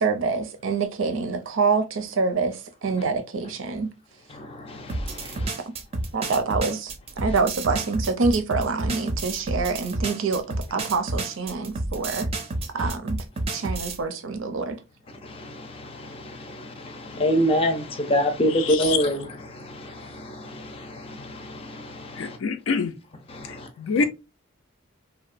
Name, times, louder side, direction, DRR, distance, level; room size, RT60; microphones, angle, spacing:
voice 1, 0.0-3.9 5.2-5.3 6.1-6.9 7.2-12.3 12.7-13.2 13.5-14.8, right 4 dB, 85° right, 0.5 m, -26 dB
voice 2, 4.3-5.5 6.2-6.3 7.3-7.4 12.8-12.9 15.2-22.4 23.3-23.7, equal, 30° left, 0.5 m, -27 dB
sound 1, 4.9-14.0, right 2 dB, 30° right, 0.4 m, -30 dB
voice 3, 18.5-19.0 22.2-23.0 23.4-24.0, left 4 dB, 90° left, 0.4 m, -26 dB
2.8 x 2.1 x 2.4 m
head